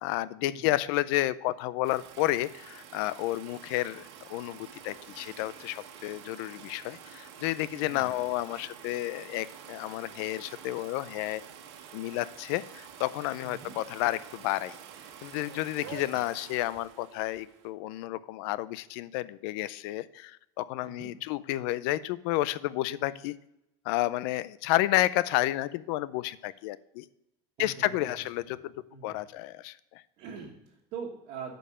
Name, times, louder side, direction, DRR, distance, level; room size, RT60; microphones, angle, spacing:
voice 1, 0.0-11.4 11.9-14.8 15.2-23.3 23.9-27.1 27.6-28.7 29.0-30.0, left 16 dB, 65° left, 18 dB, 0.5 m, -31 dB
sound 1, 1.8-17.7, right 8 dB, 90° right, 1.4 m, -48 dB
voice 2, 7.7-8.2 13.4-13.7 15.8-16.2 20.8-21.1 27.6-28.3 28.9-29.2 30.2-31.6, right 6 dB, 50° right, -4 dB, 1.6 m, -43 dB
8.7 x 5.4 x 4.9 m, 0.84 s
cardioid pair, 170°, 14 cm